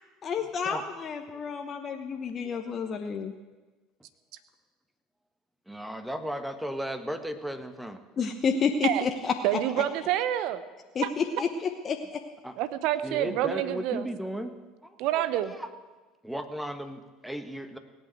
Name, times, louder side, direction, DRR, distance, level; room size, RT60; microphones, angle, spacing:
voice 1, 0.2-3.3 8.2-9.8 10.9-12.2, left 5 dB, 35° left, 4 dB, 1.1 m, -30 dB
voice 2, 1.3-1.6 2.4-2.7 5.7-8.0 9.7-9.8 11.3-11.4 12.4-12.6 13.0-14.5 14.8-15.7 16.2-17.8, equal, 5° right, 8 dB, 1.5 m, -36 dB
voice 3, 9.4-10.6 11.0-11.1 12.6-14.1 15.0-15.5, right 12 dB, 55° right, 13 dB, 0.9 m, -27 dB
17.5 x 8.8 x 7.9 m, 1.2 s
figure-of-eight pair, 65°, 0 cm